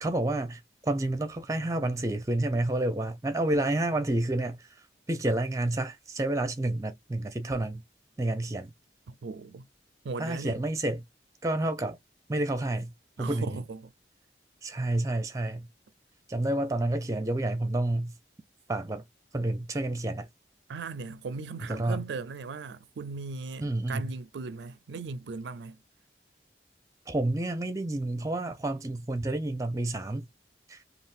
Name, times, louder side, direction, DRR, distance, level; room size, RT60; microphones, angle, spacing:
voice 1, 0.0-4.7 5.1-7.8 8.2-8.7 10.2-11.0 11.4-12.0 12.3-12.9 13.2-13.6 14.6-15.7 16.3-18.1 18.7-19.0 19.3-20.3 21.7-22.0 23.6-24.1 27.1-30.3 30.7-30.8, right 1 dB, 20° right, 0.5 m, -29 dB
voice 2, 9.1-9.7 10.0-10.6 13.2-13.8 20.7-25.8, right 4 dB, 75° right, 0.4 m, -38 dB
3.5 x 2.4 x 2.4 m
head